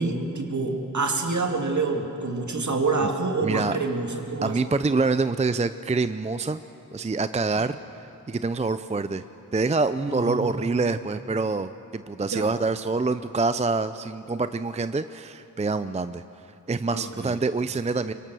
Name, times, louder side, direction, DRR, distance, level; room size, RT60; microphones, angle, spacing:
voice 1, 0.0-4.6 7.6-7.7 10.1-10.5 12.3-12.5 16.9-17.3, right 3 dB, 60° right, 2 dB, 2.4 m, -27 dB
voice 2, 3.4-3.8 4.4-6.6 6.9-9.2 9.5-16.2 16.7-18.1, right 3 dB, 20° right, 12 dB, 0.5 m, -26 dB
24.0 x 23.0 x 6.3 m, 2.9 s
wide cardioid pair, 70°, 33 cm